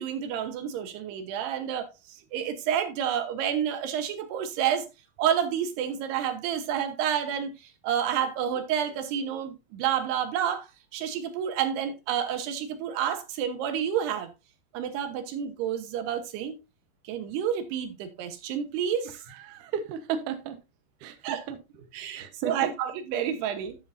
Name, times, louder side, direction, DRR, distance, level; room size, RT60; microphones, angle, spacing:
voice 1, 0.0-4.9 5.2-7.5 7.8-14.3 14.7-16.6 17.0-19.2 21.2-21.4 21.9-23.8, right 9 dB, 90° right, 3.2 m, -29 dB
voice 2, 19.4-20.6 21.0-21.6 22.0-22.7, right 8 dB, 65° right, 2.3 m, -34 dB
13.0 x 6.6 x 2.6 m
omnidirectional pair, 4.6 m